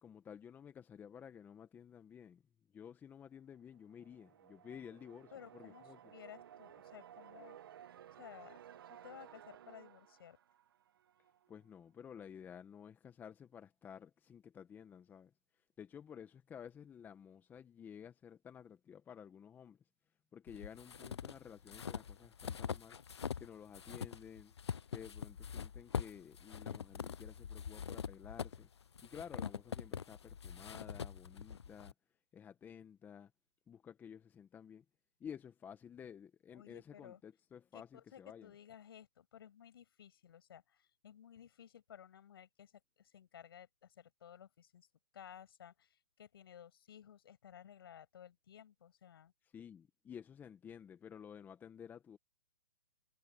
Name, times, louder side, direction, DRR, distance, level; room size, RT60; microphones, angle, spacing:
voice 1, 0.0-2.4 2.7-6.0 11.5-15.3 15.8-19.8 20.3-23.0 23.4-24.5 24.9-28.7 29.0-31.9 32.3-33.3 33.7-34.8 35.2-38.5 49.5-52.2, left 8 dB, 15° left, 1.5 m, -53 dB
sound 1, 3.7-11.5, right 10 dB, 60° right, 1.8 m, -57 dB
voice 2, 5.3-7.6 8.1-8.6 8.9-10.4 36.5-37.2 37.7-44.9 45.1-49.3, left 9 dB, 60° left, 7.3 m, -56 dB
sound 2, 20.5-23.5 23.7-31.9, left 7 dB, 85° left, 0.5 m, -44 dB
hypercardioid pair, 140°, 14 cm